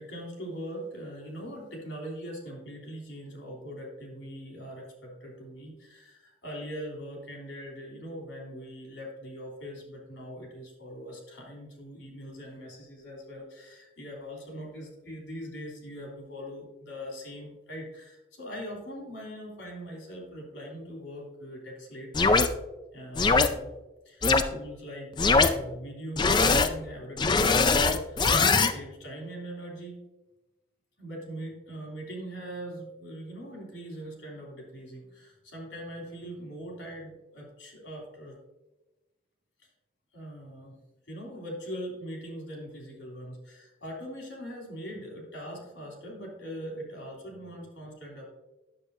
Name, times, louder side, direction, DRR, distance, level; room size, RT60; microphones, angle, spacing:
voice 1, 0.0-22.4 22.9-23.7 24.0-30.0 31.0-38.4 40.1-40.8 41.1-48.3, equal, 90° left, -1 dB, 3.1 m, -41 dB
sound 1, 22.1-22.5 23.2-23.5 24.2-24.4 25.2-25.5 26.2-26.7 27.2-28.7, left 4 dB, 25° left, 0.4 m, -21 dB
10.0 x 7.4 x 2.7 m, 1.0 s
head